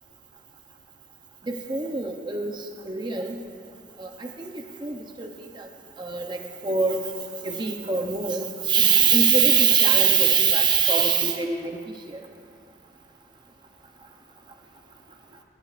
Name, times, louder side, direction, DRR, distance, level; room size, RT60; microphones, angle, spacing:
voice 1, 1.5-2.6 2.9-3.3 4.0-4.5 4.8-5.3 6.0-6.4 6.6-7.0 7.4-11.8, right 6 dB, 25° right, 4 dB, 0.7 m, -22 dB
16.0 x 16.0 x 2.5 m, 2.4 s
head